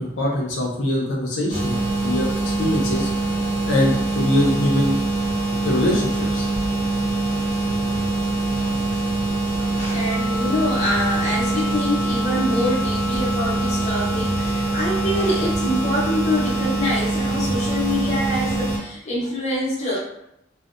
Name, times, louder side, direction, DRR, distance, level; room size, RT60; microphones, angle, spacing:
voice 1, 0.0-3.1 3.7-5.0 5.6-6.5, left 1 dB, 80° left, -3 dB, 0.5 m, -23 dB
sound 1, 1.5-18.8, right 2 dB, 70° right, 0.6 m, -23 dB
voice 2, 9.6-20.0, left 1 dB, 40° left, -5 dB, 0.7 m, -25 dB
Wind instrument woodwind instrument, 10.1-17.0, left 2 dB, 10° right, 0.5 m, -33 dB
2.7 x 2.0 x 2.4 m, 0.78 s
head